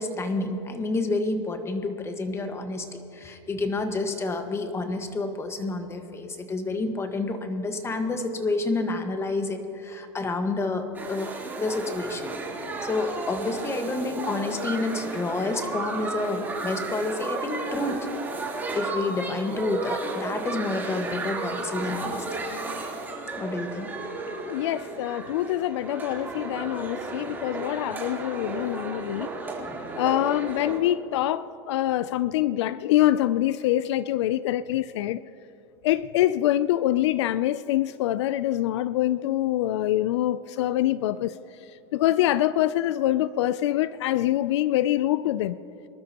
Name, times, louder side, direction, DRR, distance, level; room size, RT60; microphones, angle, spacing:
voice 1, 0.0-11.3 11.6-12.3 12.8-18.1 18.7-22.4 23.4-23.9, left 3 dB, 20° left, 1.4 m, -29 dB
sound 1, 10.9-30.8, right 3 dB, 15° right, 3.4 m, -34 dB
voice 2, 24.5-29.3 30.0-35.2 35.8-41.3 41.9-45.6, left 13 dB, 80° left, 0.4 m, -25 dB
25.0 x 12.5 x 2.9 m
supercardioid pair, 115°, 14 cm